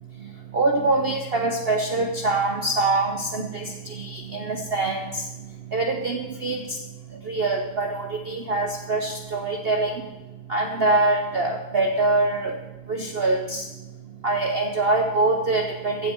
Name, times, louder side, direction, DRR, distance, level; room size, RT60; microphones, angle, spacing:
voice 1, 0.2-6.8 7.1-10.1 10.5-13.8 14.2-16.1, right 2 dB, 50° right, 4 dB, 0.8 m, -24 dB
15.0 x 7.7 x 4.5 m, 1.1 s
omnidirectional pair, 1.8 m